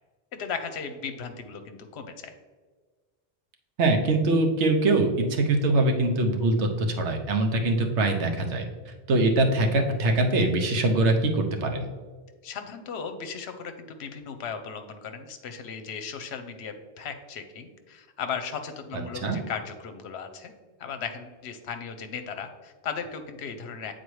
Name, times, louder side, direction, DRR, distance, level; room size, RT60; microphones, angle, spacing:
voice 1, 0.3-2.3 12.4-20.5 20.8-23.9, left 6 dB, 70° left, 7 dB, 0.9 m, -36 dB
voice 2, 3.8-8.6 9.1-11.9 19.2-19.4, right 2 dB, 80° right, 3 dB, 1.1 m, -23 dB
8.1 x 4.0 x 3.1 m, 1.4 s
omnidirectional pair, 1.2 m